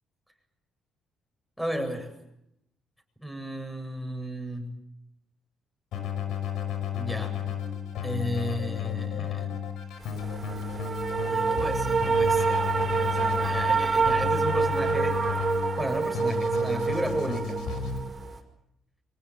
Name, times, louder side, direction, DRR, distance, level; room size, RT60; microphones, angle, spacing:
voice 1, 1.6-2.1 3.2-4.8 7.0-7.4 8.0-9.6 11.3-15.2 15.5-17.6, equal, ahead, 5 dB, 7.8 m, -34 dB
Keyboard (musical), 5.9-18.0, left 8 dB, 75° left, 5.4 m, -33 dB
sound 1, 10.0-18.4, right 5 dB, 35° right, 5.5 m, -27 dB
26.0 x 18.5 x 9.3 m, 0.83 s
cardioid pair, 95°, 0 cm